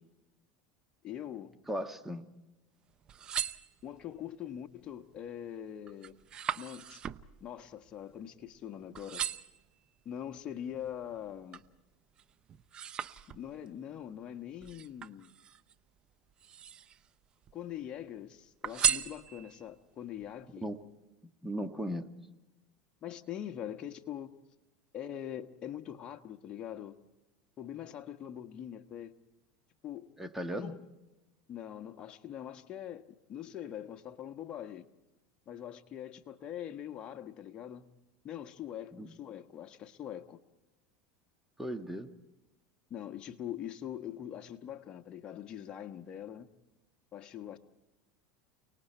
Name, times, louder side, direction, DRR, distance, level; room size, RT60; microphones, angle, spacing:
voice 1, 1.0-1.5 3.8-6.2 6.5-7.0 7.4-9.2 10.0-11.6 13.3-15.3 17.5-20.7 23.0-24.3 24.9-27.0 27.6-29.1 29.8-30.1 30.5-30.8 31.5-33.0 33.3-34.9 35.5-37.8 38.2-40.4 42.9-46.5 47.1-47.6, left 10 dB, 40° left, 1.4 m, -43 dB
voice 2, 1.7-2.3 20.6-20.8 21.4-22.1 30.2-30.7 38.9-39.1 41.6-42.1, equal, 10° right, 1.6 m, -36 dB
sound 1, 2.9-4.2 4.8-5.2 5.5-8.7 8.9-9.7 10.3-11.8 12.2-13.7 14.6-15.7 16.3-17.1 17.4-18.1 18.6-19.7 20.2-20.3, right 9 dB, 35° right, 0.7 m, -37 dB
29.5 x 19.5 x 4.5 m
supercardioid pair, 105°, 3 cm